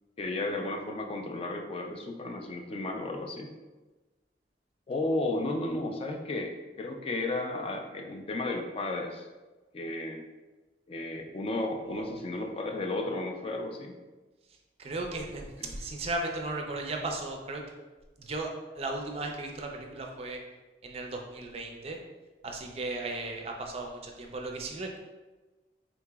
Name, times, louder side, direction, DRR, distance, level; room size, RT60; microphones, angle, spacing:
voice 1, 0.2-3.5 4.9-9.3 9.7-10.2 10.9-13.9 15.6-15.7, left 2 dB, 35° left, 3 dB, 0.3 m, -33 dB
voice 2, 11.9-12.2 14.8-17.7 18.2-18.5 18.8-20.4 20.8-22.0 22.4-25.0, right 2 dB, 35° right, 2 dB, 0.4 m, -36 dB
3.9 x 2.8 x 2.3 m, 1.2 s
head